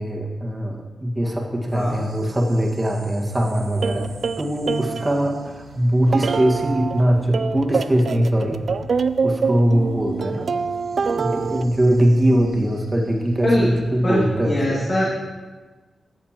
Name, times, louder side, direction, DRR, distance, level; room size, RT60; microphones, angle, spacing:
voice 1, 0.0-8.6 9.2-10.5 11.1-14.9, right 1 dB, 20° right, 0 dB, 1.7 m, -21 dB
sound 1, 1.7-14.5, equal, 85° right, 2.6 m, -44 dB
sound 2, 3.8-5.5 6.1-7.0 7.3-11.6, right 5 dB, 65° right, 0.3 m, -25 dB
voice 2, 14.0-15.0, left 1 dB, 45° left, -8 dB, 2.3 m, -22 dB
14.0 x 6.7 x 3.0 m, 1.3 s
cardioid pair, 60°, 0 cm